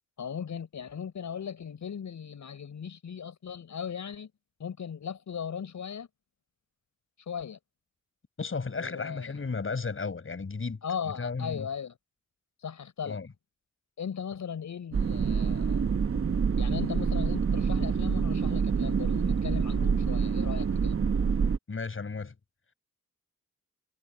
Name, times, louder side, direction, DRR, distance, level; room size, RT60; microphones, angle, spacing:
voice 1, 0.2-4.3 4.6-6.1 7.3-7.6 8.7-9.3 10.8-12.0 12.6-13.2 14.0-15.8 16.6-20.9, left 7 dB, 80° left, 6.2 m, -37 dB
voice 2, 8.4-10.8 11.1-11.7 13.0-13.3 21.7-22.3, left 4 dB, 45° left, 7.5 m, -34 dB
sound 1, 14.9-21.6, right 6 dB, 50° right, 1.1 m, -27 dB
cardioid pair, 75°, 29 cm